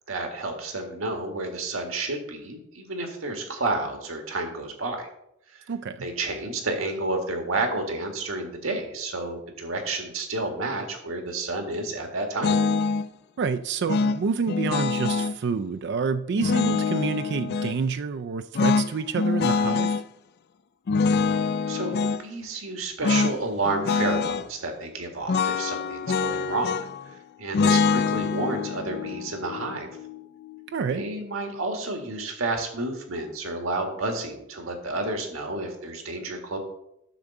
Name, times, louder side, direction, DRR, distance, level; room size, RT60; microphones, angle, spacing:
voice 1, 0.1-5.1 5.5-5.7 6.0-12.6 21.7-26.8 27.4-29.9 30.9-36.6, right 2 dB, 85° right, 3 dB, 1.8 m, -30 dB
voice 2, 5.7-6.1 13.4-20.0 30.7-31.1, right 5 dB, 55° right, 9 dB, 0.4 m, -28 dB
sound 1, 12.4-13.1 13.9-15.4 16.4-17.8 18.5-20.0 20.9-22.2 23.0-23.4 23.6-24.5 25.3-27.0 27.5-30.6, left 4 dB, 55° left, 0.4 m, -25 dB
10.0 x 3.8 x 7.1 m, 0.80 s
head